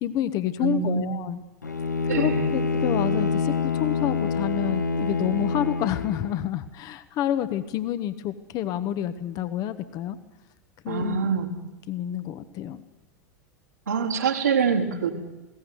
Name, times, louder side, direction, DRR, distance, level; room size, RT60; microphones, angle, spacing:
voice 1, 0.0-1.4 2.1-10.2 10.8-11.2 11.9-12.8, left 11 dB, 40° left, 11 dB, 1.3 m, -28 dB
voice 2, 0.6-1.0 2.1-2.5 10.9-11.5 13.9-15.1, right 6 dB, 80° right, -3 dB, 3.9 m, -25 dB
Bowed string instrument, 1.6-6.5, left 4 dB, 80° left, 1.4 m, -26 dB
21.5 x 17.5 x 9.5 m, 1.1 s
figure-of-eight pair, 85°, 9 cm